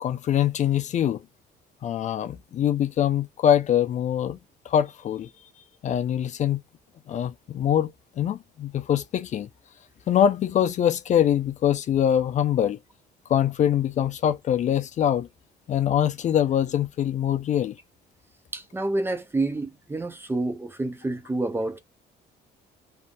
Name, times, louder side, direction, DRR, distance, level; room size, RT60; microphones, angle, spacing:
voice 1, 0.0-1.2 1.8-4.4 4.7-5.3 5.8-6.6 7.1-7.9 8.2-9.5 10.1-12.8 13.3-15.3 15.7-17.8, left 10 dB, 45° left, 0.5 m, -23 dB
voice 2, 18.5-21.8, right 2 dB, 15° right, 0.5 m, -28 dB
3.4 x 2.6 x 2.2 m
cardioid pair, 110°, 17 cm